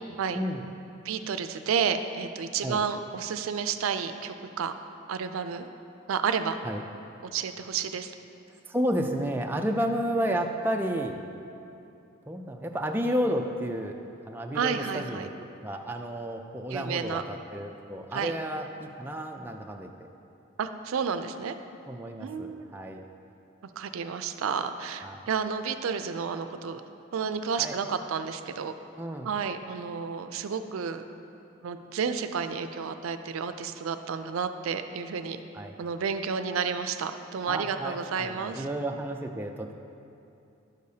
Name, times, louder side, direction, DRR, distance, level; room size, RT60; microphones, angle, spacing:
voice 1, 0.3-0.6 2.6-2.8 6.6-6.8 8.7-11.2 12.3-14.0 14.3-19.9 21.9-23.0 25.0-25.2 27.6-27.8 29.0-29.3 35.5-35.7 37.5-39.7, equal, 10° right, 2 dB, 0.3 m, -31 dB
voice 2, 1.0-4.7 5.1-5.7 6.1-6.6 7.2-8.1 14.5-15.3 16.7-17.2 18.1-18.3 20.6-21.5 22.2-22.7 23.8-26.8 27.1-28.7 29.2-31.0 31.6-35.4 35.8-38.6, right 6 dB, 80° right, 9 dB, 0.4 m, -31 dB
11.0 x 6.6 x 2.7 m, 2.7 s
head